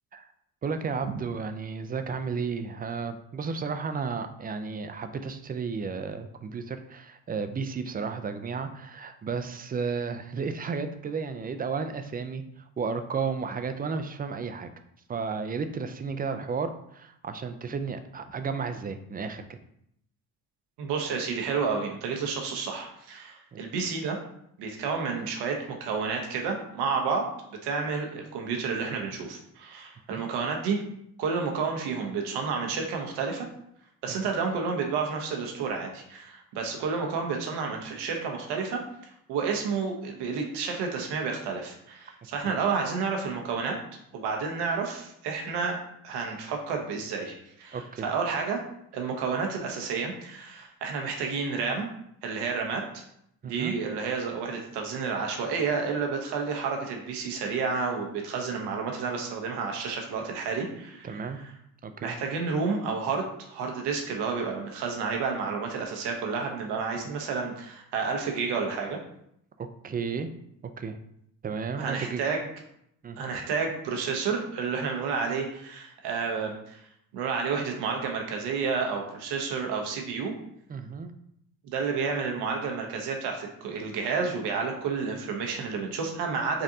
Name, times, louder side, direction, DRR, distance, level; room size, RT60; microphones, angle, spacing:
voice 1, 0.6-12.4 12.8-14.7 15.1-19.6 23.5-23.6 30.1-30.2 34.1-34.2 47.7-48.1 53.4-53.8 61.0-61.4 61.8-62.2 69.6-70.3 70.8-71.0 71.4-72.2 73.0-73.2 80.7-81.1, right 5 dB, 25° right, 8 dB, 0.3 m, -33 dB
voice 2, 20.8-24.2 24.6-27.3 27.6-30.8 31.2-33.5 34.0-43.8 44.1-45.8 46.0-48.6 48.9-51.9 52.2-53.0 53.4-61.5 62.0-69.0 71.8-72.4 73.2-76.8 77.1-80.3 81.7-86.6, right 5 dB, 90° right, 2 dB, 0.8 m, -30 dB
5.2 x 2.5 x 2.7 m, 0.74 s
cardioid pair, 80°, 39 cm